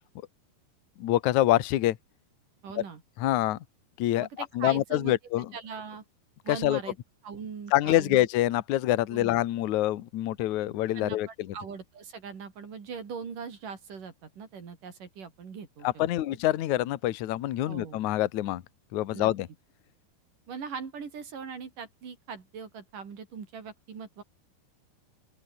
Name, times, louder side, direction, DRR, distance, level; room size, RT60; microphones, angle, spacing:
voice 1, 1.0-2.0 3.2-3.6 4.0-4.3 4.5-5.5 6.5-6.8 7.7-11.3 15.8-18.6 18.9-19.5, left 14 dB, 60° left, 2.1 m, -26 dB
voice 2, 2.6-3.0 4.2-5.1 5.5-6.0 6.4-7.0 7.2-8.3 9.1-9.4 10.9-15.9 16.2-16.3 17.7-18.0 19.1-19.3 20.5-24.2, right 6 dB, 55° right, 4.9 m, -40 dB
open air
omnidirectional pair, 4.8 m